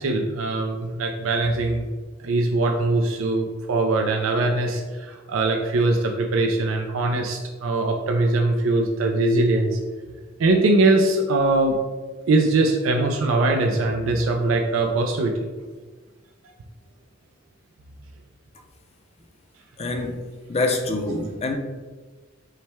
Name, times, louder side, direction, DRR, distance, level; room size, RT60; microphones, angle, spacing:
voice 1, 0.0-1.9 2.2-9.8 10.4-11.8 12.3-15.3, right 2 dB, 80° right, 2 dB, 0.4 m, -21 dB
voice 2, 19.8-20.2 20.5-21.6, left 2 dB, 30° left, 4 dB, 0.5 m, -25 dB
5.5 x 2.2 x 3.4 m, 1.3 s
head